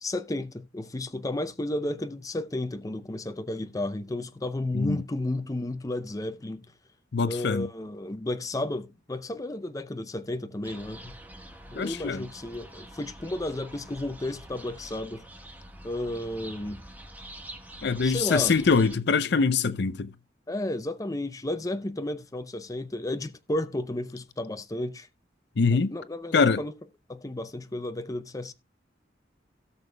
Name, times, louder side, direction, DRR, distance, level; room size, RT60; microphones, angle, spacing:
voice 1, 0.0-6.6 7.3-11.1 11.7-15.2 15.8-16.8 18.0-18.5 20.5-25.1 25.7-26.7 27.1-28.5, left 1 dB, 20° left, 0.6 m, -32 dB
voice 2, 7.1-7.7 11.7-12.3 17.8-20.1 25.6-25.9 26.3-26.6, left 4 dB, 65° left, 0.6 m, -24 dB
sound 1, 10.6-19.0, right 1 dB, 10° right, 1.3 m, -45 dB
17.0 x 6.7 x 2.2 m
head